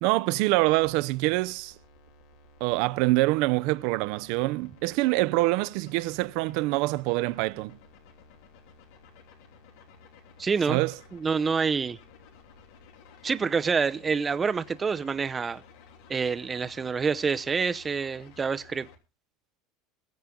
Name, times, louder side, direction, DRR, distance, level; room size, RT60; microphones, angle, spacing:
voice 1, 0.0-1.7 2.6-7.8 10.7-10.9, right 20 dB, 60° right, 0.5 m, -25 dB
sound 1, 0.8-18.9, left 4 dB, 75° left, 3.0 m, -54 dB
voice 2, 10.4-10.8 11.1-12.0 13.2-15.6 16.1-18.9, right 5 dB, 15° right, 0.6 m, -27 dB
21.5 x 7.4 x 3.7 m
cardioid pair, 160°, 0 cm